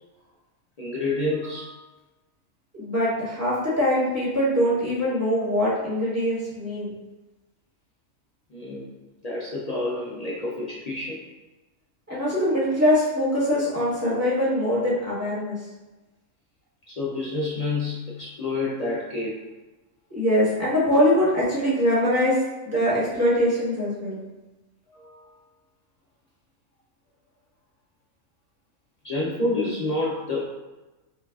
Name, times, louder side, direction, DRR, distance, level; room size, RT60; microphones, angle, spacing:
voice 1, 0.8-1.8 8.5-8.9 9.2-11.2 16.9-19.4 24.9-25.4 29.0-30.4, left 2 dB, 80° left, -5 dB, 0.3 m, -28 dB
voice 2, 2.8-6.9 12.1-15.6 20.1-24.2, equal, 10° right, -10 dB, 1.3 m, -23 dB
5.5 x 2.4 x 2.3 m, 1.1 s
omnidirectional pair, 1.4 m